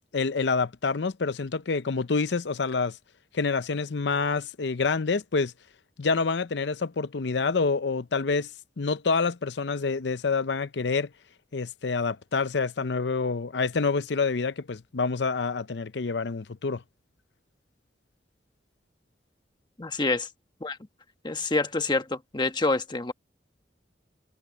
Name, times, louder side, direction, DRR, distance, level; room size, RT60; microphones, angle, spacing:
voice 1, 0.1-3.0 3.3-5.5 6.0-8.5 8.8-11.1 11.5-16.8, left 4 dB, 75° left, 0.7 m, -27 dB
voice 2, 19.8-20.3 20.6-20.8 21.2-23.1, left 3 dB, 25° left, 1.2 m, -27 dB
head